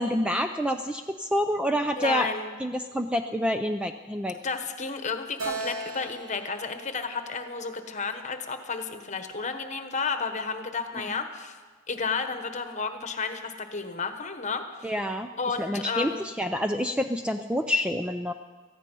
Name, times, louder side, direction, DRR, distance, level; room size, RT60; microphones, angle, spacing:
voice 1, 0.0-2.3 2.6-4.4 11.0-11.2 14.8-15.3 15.6-18.3, equal, 5° right, 6 dB, 0.4 m, -28 dB
voice 2, 2.0-2.5 4.4-11.6 11.9-14.6 15.4-16.2, left 4 dB, 35° left, 7 dB, 1.2 m, -32 dB
Keyboard (musical), 5.4-8.8, right 3 dB, 75° right, 3.0 m, -39 dB
18.0 x 14.5 x 5.4 m, 1.4 s
head